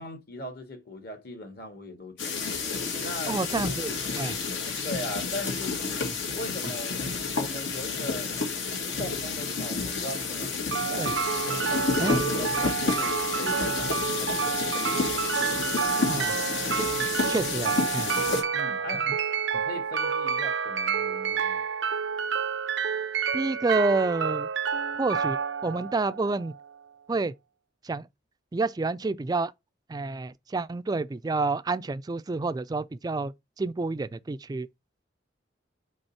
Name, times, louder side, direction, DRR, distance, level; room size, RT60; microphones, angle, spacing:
voice 1, 0.0-2.7 3.0-3.4 4.8-5.8 6.3-7.0 7.3-8.3 9.0-11.1 11.7-13.1 13.4-14.5 18.5-19.1 19.6-21.6, left 1 dB, 60° left, 1.8 m, -39 dB
sound 1, 2.2-18.4, left 4 dB, 85° left, 2.2 m, -30 dB
voice 2, 3.3-4.4 6.1-6.2 11.0-11.1 12.0-12.2 16.1-16.4 17.3-18.1 19.5-19.6 23.3-24.5 25.0-25.4 25.6-26.5 27.1-27.3 27.8-28.1 28.5-29.5 29.9-34.7, right 3 dB, 20° right, 0.3 m, -29 dB
sound 2, 10.7-26.7, right 6 dB, 85° right, 0.5 m, -29 dB
5.3 x 3.9 x 5.7 m
head